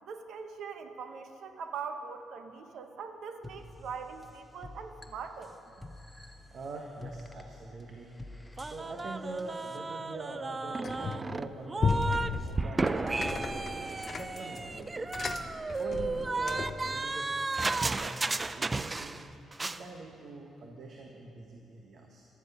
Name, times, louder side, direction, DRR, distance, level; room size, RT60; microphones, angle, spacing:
voice 1, 0.0-5.5, right 5 dB, 70° right, 7 dB, 1.1 m, -42 dB
sound 1, 3.4-9.8, left 1 dB, ahead, 1.1 m, -50 dB
voice 2, 6.5-13.7 14.2-15.0 15.8-17.4 17.8-19.2 19.6-22.3, right 3 dB, 55° right, 1 dB, 1.3 m, -44 dB
sound 2, 8.6-12.3 12.6-19.3 19.5-19.8, right 3 dB, 25° right, 0.4 m, -33 dB
sound 3, 10.8-11.4 11.8-16.9, left 5 dB, 40° left, 0.7 m, -34 dB
15.0 x 12.0 x 5.6 m, 2.9 s
cardioid pair, 90°, 0 cm